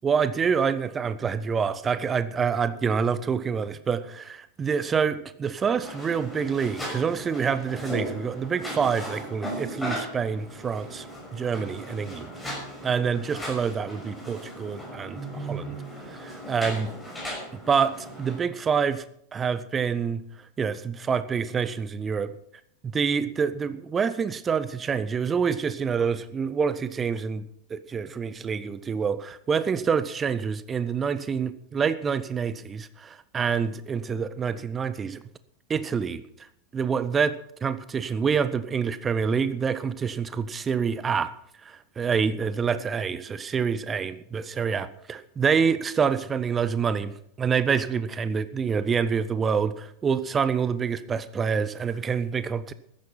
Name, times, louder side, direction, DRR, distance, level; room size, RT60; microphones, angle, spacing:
voice 1, 0.0-11.1 11.3-12.3 12.8-15.8 16.1-16.9 17.5-19.0 19.3-20.2 20.6-22.3 22.8-35.2 35.7-36.2 36.7-41.3 41.6-52.7, right 6 dB, 20° right, 15 dB, 0.9 m, -27 dB
sound 1, 5.7-18.4, equal, 5° left, 6.1 m, -37 dB
14.0 x 10.5 x 5.6 m, 0.71 s
figure-of-eight pair, 90°, 0 cm